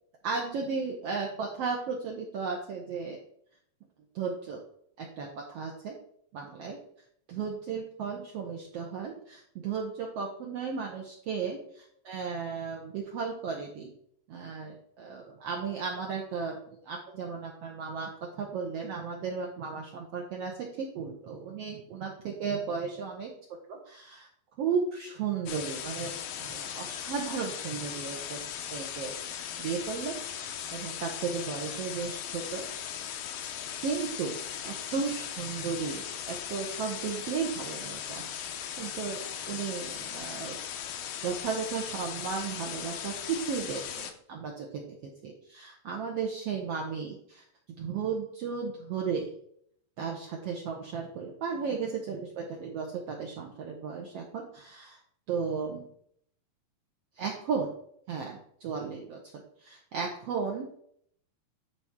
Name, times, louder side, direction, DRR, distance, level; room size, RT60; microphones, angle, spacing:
voice 1, 0.2-3.2 4.1-4.6 5.0-6.0 6.3-6.8 7.3-13.9 14.3-18.1 18.4-23.3 23.7-24.3 24.6-26.1 26.4-28.4 28.7-32.7 33.8-34.4 34.6-38.3 38.8-40.6 41.2-47.4 47.8-49.3 50.0-55.0 55.3-55.9 57.2-57.7 58.1-59.2 59.6-60.7, right 5 dB, 90° right, 0 dB, 1.3 m, -35 dB
sound 1, 25.5-44.1, left 9 dB, 85° left, 2.6 m, -38 dB
11.0 x 4.3 x 3.6 m, 0.67 s
omnidirectional pair, 4.1 m